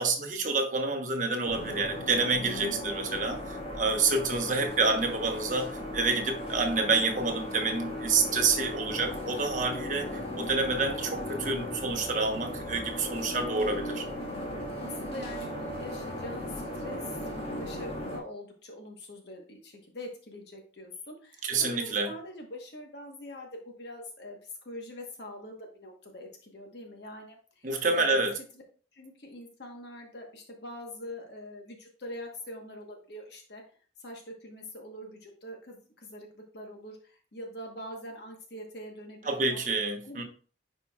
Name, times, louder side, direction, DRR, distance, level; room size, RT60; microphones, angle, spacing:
voice 1, 0.0-14.1 21.4-22.1 27.6-28.4 39.2-40.2, right 3 dB, 45° right, 1.0 m, -28 dB
sound 1, 1.4-18.2, left 1 dB, 30° left, 1.5 m, -37 dB
voice 2, 2.6-2.9 14.4-17.2 17.6-24.4 24.6-28.2 28.9-33.6 34.0-39.6 40.0-40.2, left 1 dB, 60° left, 1.2 m, -44 dB
10.0 x 4.4 x 2.3 m
head